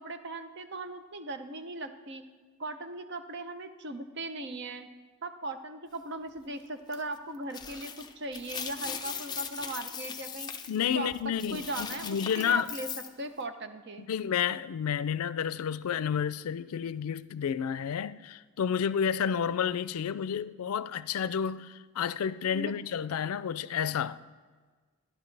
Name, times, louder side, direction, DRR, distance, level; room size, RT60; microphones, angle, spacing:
voice 1, 0.0-2.3 2.6-4.9 5.2-10.5 10.9-12.9 13.2-14.1 22.5-22.7, right 2 dB, 50° right, 0.7 m, -38 dB
sound 1, 6.9-7.0 7.5-13.1, left 7 dB, 20° left, 0.5 m, -39 dB
voice 2, 10.7-12.7 14.0-24.2, left 8 dB, 85° left, 0.4 m, -30 dB
13.5 x 11.0 x 3.3 m
head